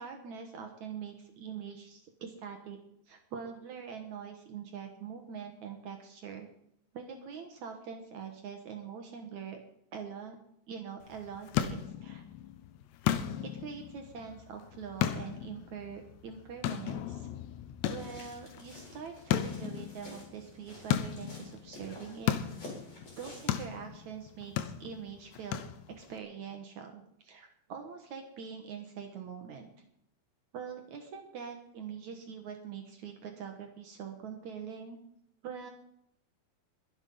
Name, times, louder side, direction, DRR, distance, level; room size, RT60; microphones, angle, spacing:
voice 1, 0.0-2.8 3.1-6.5 6.9-9.6 9.9-10.4 10.7-12.2 13.4-17.3 17.9-22.4 23.1-29.7 30.5-35.0 35.4-35.7, right 7 dB, 60° right, 5 dB, 2.0 m, -43 dB
sound 1, 11.0-26.2, left 11 dB, 80° left, 3.1 m, -36 dB
sound 2, 18.0-23.7, left 2 dB, 35° left, 5.3 m, -50 dB
22.0 x 8.2 x 5.5 m, 0.73 s
omnidirectional pair, 4.9 m